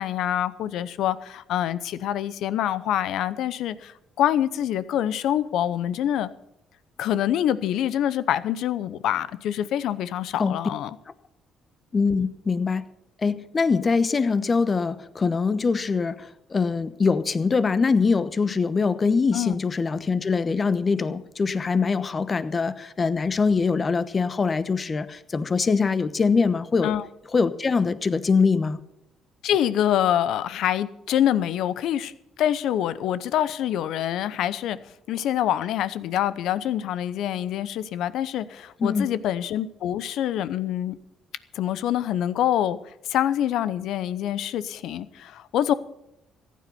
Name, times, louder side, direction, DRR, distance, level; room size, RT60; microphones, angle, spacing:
voice 1, 0.0-6.3 7.0-10.9 19.3-19.5 26.8-27.1 29.4-32.1 32.4-34.8 35.1-41.0 41.5-42.8 43.1-45.7, left 11 dB, 75° left, 15 dB, 0.7 m, -25 dB
voice 2, 11.9-12.9 13.2-26.9 27.3-28.8 38.8-39.1, left 4 dB, 35° left, 14 dB, 1.0 m, -23 dB
14.5 x 9.4 x 7.0 m, 0.82 s
supercardioid pair, 75°, 0 cm